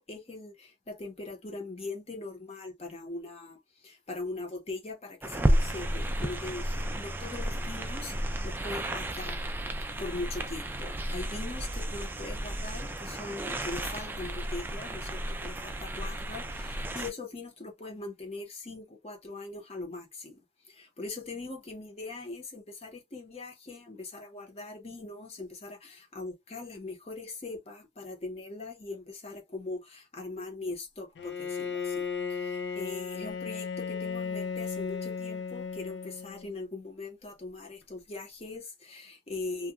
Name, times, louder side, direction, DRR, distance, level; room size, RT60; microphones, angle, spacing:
voice 1, 0.0-39.7, left 3 dB, 35° left, 0.8 m, -41 dB
sound 1, 5.2-17.1, right 1 dB, 10° right, 0.3 m, -32 dB
Bowed string instrument, 31.2-36.6, left 5 dB, 75° left, 0.4 m, -35 dB
2.8 x 2.3 x 2.2 m
head